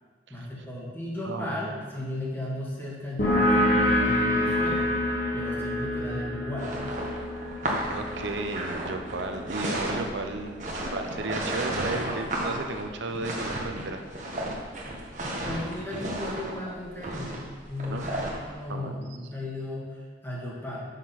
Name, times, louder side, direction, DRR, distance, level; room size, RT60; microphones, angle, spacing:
voice 1, 0.3-4.9 5.3-6.7 15.4-20.8, left 1 dB, 10° left, -5 dB, 1.6 m, -35 dB
voice 2, 1.2-1.7 7.9-14.0 17.9-18.1 18.7-18.9, right 2 dB, 70° right, 5 dB, 0.7 m, -34 dB
sound 1, 3.2-10.5, left 1 dB, 45° left, 2.0 m, -27 dB
sound 2, 6.6-18.5, right 1 dB, 40° right, 1.3 m, -33 dB
6.8 x 6.1 x 5.8 m, 1.5 s
head